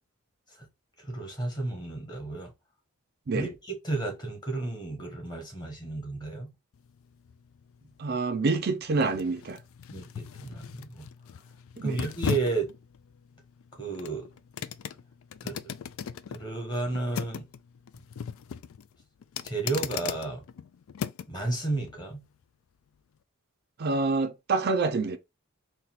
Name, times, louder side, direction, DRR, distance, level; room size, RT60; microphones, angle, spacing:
voice 1, 1.0-2.5 3.3-6.5 9.9-11.1 11.8-12.7 13.8-14.3 15.4-15.7 16.3-17.5 19.4-20.4 21.3-22.2, right 3 dB, 20° left, 1.3 m, -32 dB
sound 1, 6.7-21.4 21.9-22.0, left 7 dB, 70° left, 0.3 m, -39 dB
voice 2, 8.0-9.6 11.8-12.0 23.8-25.2, right 3 dB, 50° right, 0.4 m, -27 dB
4.0 x 2.2 x 4.2 m
head